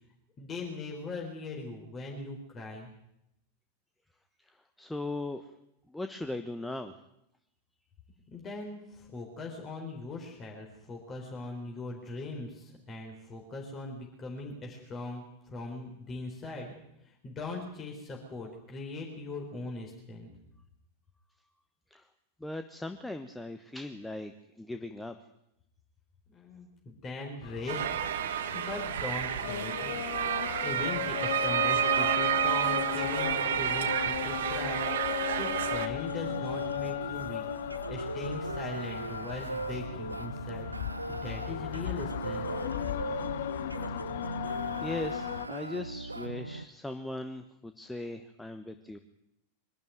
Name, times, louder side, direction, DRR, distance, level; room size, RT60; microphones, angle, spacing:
voice 1, 0.4-2.9 8.3-16.7 17.0-20.3 26.3-27.8 28.5-29.9 30.6-37.4 37.9-40.7 41.1-42.5, left 2 dB, 25° left, 0 dB, 4.4 m, -40 dB
voice 2, 4.8-5.5 5.9-7.0 21.9-22.0 22.4-25.2 44.8-49.0, left 2 dB, 5° left, 8 dB, 1.2 m, -38 dB
sound 1, 27.4-45.5, left 13 dB, 55° left, 0.7 m, -36 dB
sound 2, 27.7-35.9, right 10 dB, 60° right, 1.3 m, -30 dB
sound 3, 36.0-46.7, right 2 dB, 85° right, 0.7 m, -38 dB
23.5 x 12.5 x 9.5 m, 0.84 s
figure-of-eight pair, 90°, 0 cm